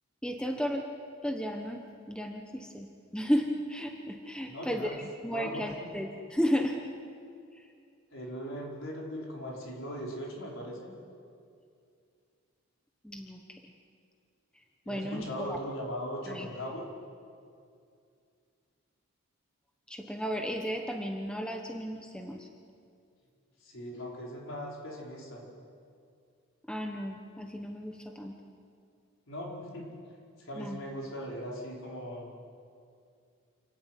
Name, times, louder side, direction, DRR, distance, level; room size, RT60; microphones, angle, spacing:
voice 1, 0.2-0.9 1.2-6.9 7.5-7.7 13.0-13.6 14.9-15.6 16.3-16.5 19.9-22.5 26.7-28.4 30.5-30.8, equal, 5° left, 3 dB, 1.1 m, -34 dB
voice 2, 4.5-4.9 5.3-5.6 8.1-10.9 14.9-16.9 23.6-25.4 29.3-29.9 30.5-32.3, equal, 65° left, -3 dB, 5.2 m, -39 dB
28.5 x 12.5 x 9.3 m, 2.4 s
head